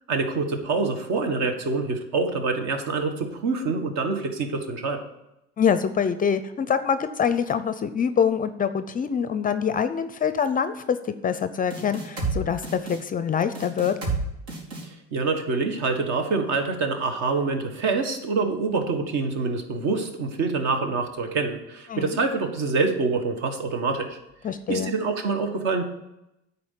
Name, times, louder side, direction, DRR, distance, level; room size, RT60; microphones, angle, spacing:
voice 1, 0.1-5.0 14.8-24.2 24.7-25.8, right 4 dB, 60° right, 5 dB, 1.6 m, -26 dB
voice 2, 5.6-14.0 21.9-22.2 24.4-24.9, left 7 dB, 25° left, 12 dB, 0.5 m, -25 dB
sound 1, 11.7-12.4 12.6-13.0 13.5-14.2 14.5-14.8, right 4 dB, 90° right, 3.2 m, -29 dB
9.5 x 4.3 x 7.5 m, 0.88 s
supercardioid pair, 110°, 32 cm